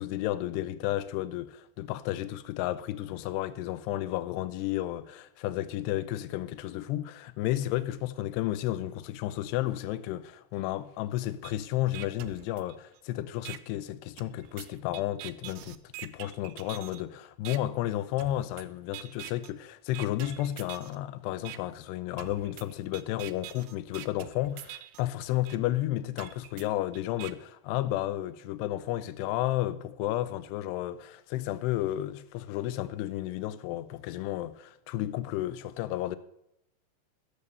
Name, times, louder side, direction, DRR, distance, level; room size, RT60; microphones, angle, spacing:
voice 1, 0.0-36.2, left 14 dB, 85° left, 2.7 m, -32 dB
sound 1, 11.4-11.5 11.9-13.0 13.5-13.6 14.2-17.0 17.5-17.6 18.2-18.6 18.9-19.5 19.9-21.0 21.5-21.6 22.2-25.0 25.5-25.6 26.2-27.3, right 14 dB, 80° right, 2.6 m, -44 dB
13.5 x 7.0 x 6.6 m
omnidirectional pair, 5.0 m